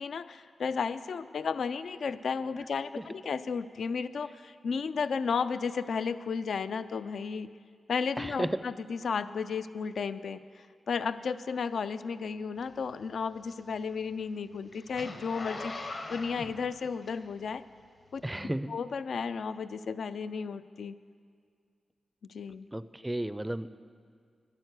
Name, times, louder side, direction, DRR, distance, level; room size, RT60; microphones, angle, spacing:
voice 1, 0.0-7.5 7.9-10.4 10.9-17.6 18.1-18.2 18.7-21.0 22.3-22.7, left 5 dB, 75° left, 13 dB, 0.4 m, -33 dB
voice 2, 8.2-8.6 18.2-18.7 22.7-23.8, right 1 dB, 10° right, 15 dB, 0.4 m, -33 dB
Zipper (clothing), 12.6-17.6 18.1-18.2, left 2 dB, 55° left, 1.3 m, -42 dB
11.5 x 9.1 x 8.1 m, 2.1 s
cardioid pair, 85°, 0 cm